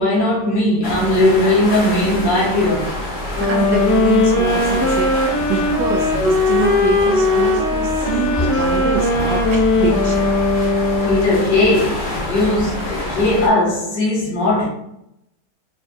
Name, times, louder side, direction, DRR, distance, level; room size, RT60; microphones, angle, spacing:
voice 1, 0.0-2.9 11.0-14.7, left 2 dB, 90° left, 1.9 m, -18 dB
sound 1, 0.8-13.5, left 1 dB, 40° left, 0.9 m, -27 dB
voice 2, 3.3-10.3, right 5 dB, 80° right, 1.2 m, -25 dB
sound 2, 3.4-11.6, left 2 dB, 70° left, 1.5 m, -18 dB
4.9 x 2.2 x 2.5 m
omnidirectional pair, 1.9 m